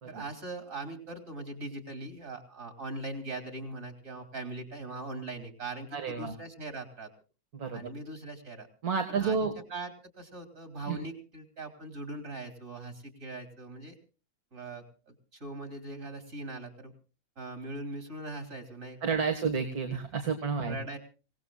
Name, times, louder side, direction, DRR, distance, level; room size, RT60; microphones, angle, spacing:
voice 1, 0.1-7.1 7.7-8.7 9.1-9.9 10.2-14.0 14.5-16.9 17.4-19.1 19.9-20.0 20.6-21.0, right 2 dB, 60° right, 6 dB, 3.4 m, -41 dB
voice 2, 5.9-6.3 7.5-7.8 8.8-9.5 10.9-11.0 19.0-20.8, right 5 dB, 85° right, 5 dB, 2.3 m, -30 dB
27.0 x 18.0 x 2.4 m, 0.35 s
omnidirectional pair, 1.5 m